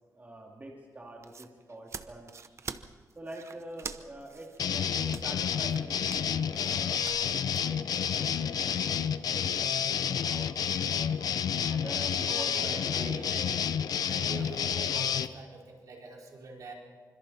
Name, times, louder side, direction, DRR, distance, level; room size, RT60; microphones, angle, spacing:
voice 1, 0.1-2.3 3.1-11.1 11.7-13.2 14.3-14.5, right 2 dB, 25° right, -1 dB, 2.9 m, -46 dB
sound 1, 1.0-7.7, right 5 dB, 45° right, 0.9 m, -45 dB
sound 2, 4.6-15.3, left 8 dB, 75° left, 0.7 m, -30 dB
voice 2, 12.3-13.5 14.0-16.7, right 3 dB, 65° right, -2 dB, 5.2 m, -44 dB
26.0 x 26.0 x 4.3 m, 1.5 s
wide cardioid pair, 115°, 6 cm